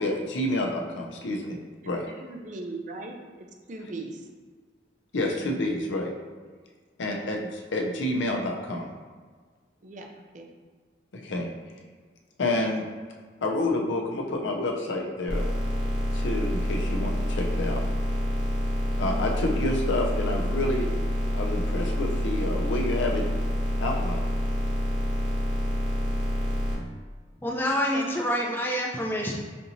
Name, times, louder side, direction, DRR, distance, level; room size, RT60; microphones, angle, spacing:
voice 1, 0.0-1.6 1.8-2.0 5.1-6.1 7.0-8.9 11.2-11.5 12.4-12.8 13.4-15.4 16.1-17.8 19.0-20.9 21.3-23.2 23.8-24.3, left 1 dB, 85° left, 1 dB, 0.6 m, -28 dB
voice 2, 1.8-4.3 7.0-7.2 9.8-10.1 10.3-10.5 19.0-19.2 27.9-28.1, right 2 dB, 40° right, 2 dB, 0.4 m, -39 dB
sound 1, 15.3-26.7, equal, 25° right, 1.0 m, -27 dB
voice 3, 27.4-29.3, equal, 10° left, -2 dB, 0.4 m, -27 dB
5.1 x 2.8 x 2.7 m, 1.5 s
head